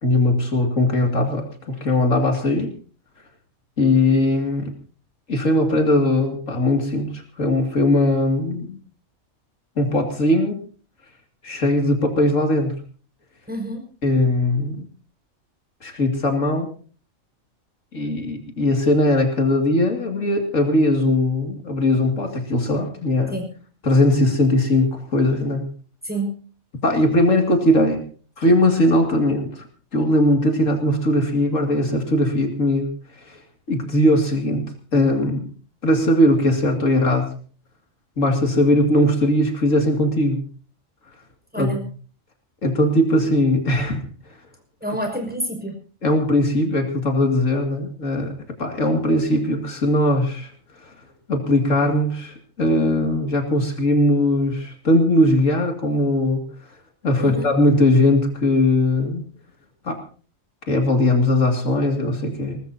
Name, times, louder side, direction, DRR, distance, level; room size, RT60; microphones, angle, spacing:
voice 1, 0.0-2.7 3.8-4.7 5.3-8.8 9.8-10.6 11.4-12.8 14.0-14.9 15.8-16.7 17.9-23.3 23.8-25.7 26.8-28.0 28.4-29.6 29.9-33.4 33.7-35.5 35.8-37.3 38.2-40.4 41.6-41.7 42.6-44.0 46.0-48.3 48.6-50.5 50.8-50.9 51.3-56.4 57.0-59.2 59.8-60.0 60.7-62.6, left 1 dB, 70° left, 4 dB, 2.9 m, -19 dB
voice 2, 13.5-13.8 23.3-23.5 26.0-26.4 41.5-41.8 44.8-45.8 57.2-57.5, right 1 dB, 5° right, 3 dB, 5.9 m, -28 dB
22.5 x 19.5 x 2.8 m, 0.41 s
omnidirectional pair, 1.4 m